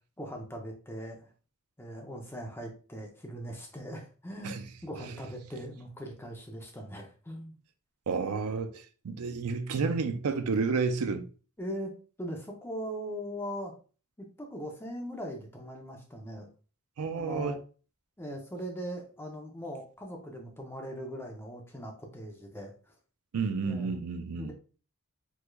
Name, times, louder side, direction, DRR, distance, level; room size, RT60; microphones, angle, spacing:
voice 1, 0.2-1.3 1.8-7.6 11.6-11.9 12.2-13.7 14.2-16.5 17.2-17.6 18.2-22.7 23.6-24.0 24.4-24.5, equal, 10° left, 0.6 m, -40 dB
voice 2, 8.1-11.3 17.0-17.6 23.3-24.5, right 4 dB, 90° right, 0.5 m, -31 dB
3.5 x 3.2 x 2.2 m
head